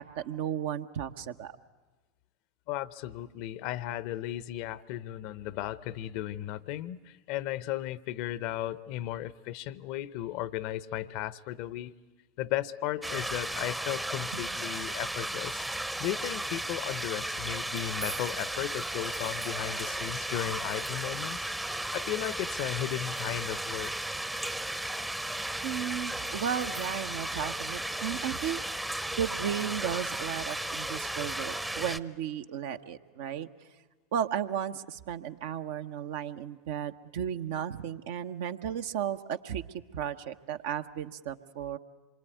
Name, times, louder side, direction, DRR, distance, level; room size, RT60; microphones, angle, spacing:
voice 1, 0.0-1.5 14.3-14.5 25.6-28.6 29.1-33.5 34.1-39.6 39.9-41.8, right 9 dB, 65° right, 7 dB, 1.0 m, -34 dB
voice 2, 2.7-11.9 12.4-15.6 16.0-21.5 21.9-24.1, left 13 dB, 60° left, 18 dB, 0.8 m, -35 dB
sound 1, 13.0-32.0, right 1 dB, 5° right, 0.8 m, -35 dB
sound 2, 18.0-20.9 21.1-24.3 24.8-24.9 25.4-27.3 27.6-27.7 28.0-31.4, right 5 dB, 90° right, 3.2 m, -51 dB
26.5 x 23.5 x 9.3 m, 1.2 s
hypercardioid pair, 85°, 0 cm